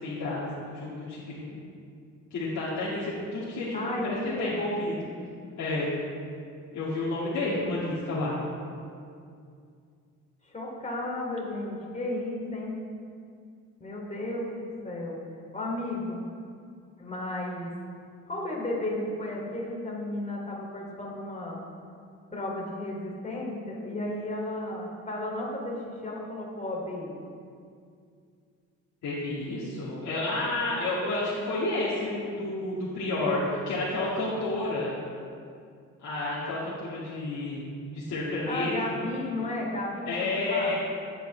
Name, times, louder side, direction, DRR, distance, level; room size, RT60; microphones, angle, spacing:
voice 1, 0.0-1.6 2.3-4.9 5.6-5.9 6.7-8.4 29.0-34.9 36.0-37.7 37.9-39.0 40.1-40.7, left 2 dB, 65° left, -9 dB, 2.2 m, -30 dB
voice 2, 3.7-4.6 10.4-12.8 13.8-14.5 14.8-15.2 15.5-16.2 17.0-17.7 18.3-21.6 22.3-27.2 38.5-40.7, left 1 dB, 25° left, -2 dB, 2.8 m, -33 dB
14.5 x 8.5 x 3.4 m, 2.3 s
cardioid pair, 90°, 30 cm